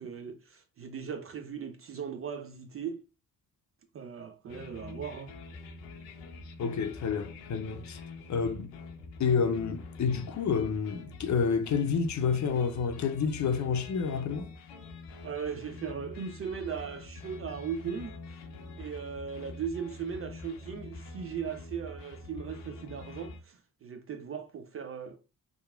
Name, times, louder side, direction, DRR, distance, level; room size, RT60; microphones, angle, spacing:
voice 1, 0.0-3.0 3.9-5.3 15.2-18.1 18.8-25.2, right 7 dB, 35° right, 0.4 m, -38 dB
sound 1, 4.5-23.4, left 3 dB, 80° left, 0.6 m, -46 dB
voice 2, 6.6-8.0 8.3-8.7 9.2-14.5, left 6 dB, 40° left, 0.6 m, -29 dB
2.9 x 2.4 x 2.3 m
hypercardioid pair, 45°, 44 cm